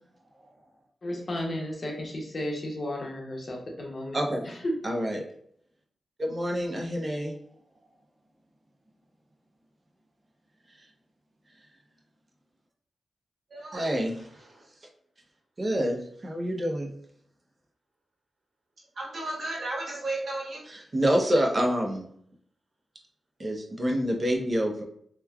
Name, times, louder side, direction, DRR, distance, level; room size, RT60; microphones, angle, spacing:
voice 1, 1.0-4.2 4.4-4.8, left 1 dB, 55° left, -1 dB, 0.8 m, -33 dB
voice 2, 4.8-5.2 6.2-7.3 13.7-14.1 15.6-16.9 20.7-22.1 23.4-24.8, equal, 45° right, 1 dB, 0.7 m, -27 dB
voice 3, 13.5-13.9 14.5-14.6 19.0-20.6, right 2 dB, 75° right, -4 dB, 1.1 m, -34 dB
3.1 x 2.2 x 2.3 m, 0.66 s
cardioid pair, 45°, 0 cm